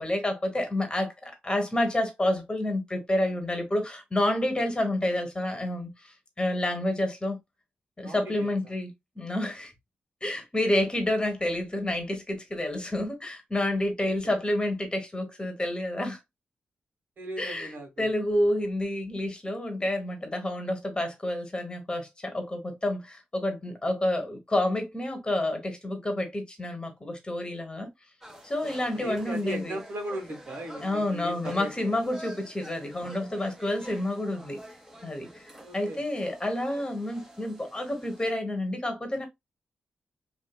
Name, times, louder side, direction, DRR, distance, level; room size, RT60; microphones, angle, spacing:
voice 1, 0.0-7.4 8.0-9.7 10.2-16.2 17.4-27.9 28.4-29.8 30.8-34.6 35.0-39.3, left 1 dB, 25° left, 1.1 m, -29 dB
voice 2, 8.0-8.5 14.2-14.4 17.2-18.1 28.9-32.0 35.6-36.0, right 1 dB, 65° right, 1.3 m, -37 dB
sound 1, 28.2-38.3, right 1 dB, 10° right, 0.9 m, -48 dB
2.7 x 2.5 x 2.3 m
cardioid pair, 60°, 4 cm